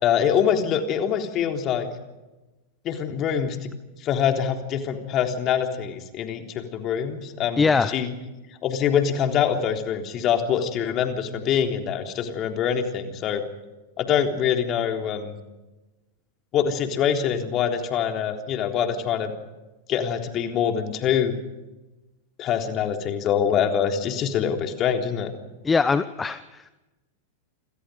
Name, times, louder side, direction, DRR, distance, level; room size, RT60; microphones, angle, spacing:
voice 1, 0.0-1.9 2.8-3.7 4.0-8.1 8.6-13.4 14.0-15.4 16.5-19.3 19.9-21.3 22.4-25.3, left 8 dB, 35° left, 4 dB, 3.6 m, -24 dB
voice 2, 7.6-7.9 25.6-26.7, left 4 dB, 15° left, 14 dB, 0.9 m, -22 dB
28.5 x 27.5 x 5.2 m, 1.1 s
figure-of-eight pair, 90°, 0 cm